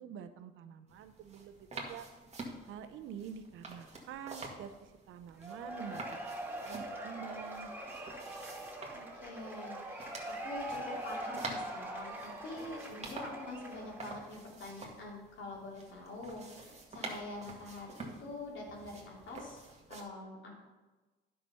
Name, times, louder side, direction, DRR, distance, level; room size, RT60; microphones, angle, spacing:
voice 1, 0.0-2.1 2.7-7.7, right 8 dB, 90° right, 10 dB, 0.8 m, -47 dB
sound 1, 0.9-20.0, right 2 dB, 35° right, 1.9 m, -49 dB
Cheering / Applause / Crowd, 5.4-14.3, right 1 dB, 10° right, 2.6 m, -43 dB
voice 2, 8.9-19.6 19.9-20.6, left 2 dB, 70° left, -3 dB, 3.3 m, -45 dB
10.5 x 6.0 x 5.5 m, 1.2 s
cardioid pair, 90°, 20 cm